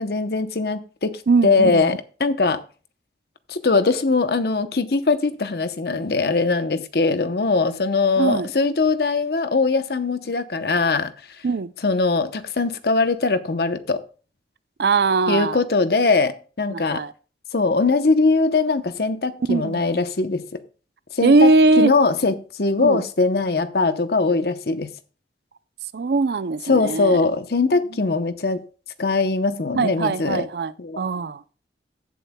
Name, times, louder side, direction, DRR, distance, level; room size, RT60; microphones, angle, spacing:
voice 1, 0.0-2.6 3.5-11.1 11.8-14.0 15.3-17.0 17.5-20.6 21.1-24.9 26.6-28.6 29.0-30.5 30.8-31.0, left 3 dB, 60° left, 0.8 m, -21 dB
voice 2, 1.3-1.9 8.2-8.5 11.4-11.7 14.8-15.6 16.7-17.1 19.5-19.8 21.2-21.9 22.8-23.0 25.9-27.2 29.8-31.4, right 3 dB, 65° right, 0.4 m, -20 dB
15.5 x 7.7 x 2.2 m
head